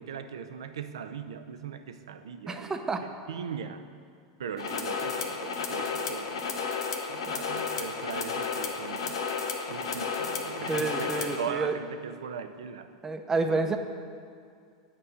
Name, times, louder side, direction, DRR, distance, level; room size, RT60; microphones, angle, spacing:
voice 1, 0.0-2.8 3.0-3.9 4.4-6.7 7.1-9.2 9.7-12.9 13.4-13.8, right 7 dB, 80° right, 9 dB, 0.5 m, -39 dB
voice 2, 2.5-3.0 10.7-11.7 13.0-13.8, right 3 dB, 20° right, 6 dB, 0.8 m, -29 dB
sound 1, 4.6-11.4, left 5 dB, 80° left, 0.9 m, -32 dB
8.7 x 5.5 x 7.7 m, 2.3 s
hypercardioid pair, 100°, 3 cm